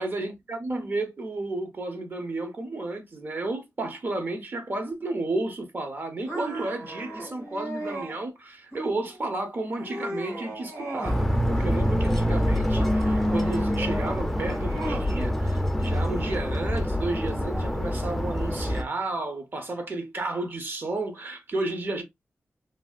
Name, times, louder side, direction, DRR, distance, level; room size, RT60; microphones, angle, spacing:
voice 1, 0.0-22.0, right 2 dB, 45° right, 0.7 m, -32 dB
sound 1, 6.3-8.2 8.7-9.2 9.6-11.2 11.5-12.2 12.8-15.1, right 1 dB, 65° right, 1.8 m, -37 dB
sound 2, 11.0-18.8, equal, 5° left, 0.4 m, -25 dB
3.3 x 2.3 x 2.3 m
wide cardioid pair, 145°, 5 cm